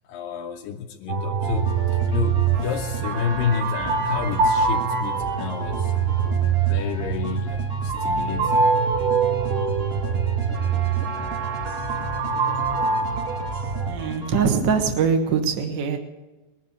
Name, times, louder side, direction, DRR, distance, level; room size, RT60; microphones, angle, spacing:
voice 1, 0.0-5.9 6.6-8.8, left 7 dB, 80° left, 2 dB, 2.3 m, -30 dB
sound 1, 1.1-13.9, right 5 dB, 90° right, 3.6 m, -24 dB
sound 2, 1.4-14.4, right 1 dB, 30° right, 1.1 m, -36 dB
voice 2, 13.8-16.0, right 6 dB, 55° right, 5 dB, 1.2 m, -22 dB
21.0 x 7.5 x 8.3 m, 1.1 s
omnidirectional pair, 4.3 m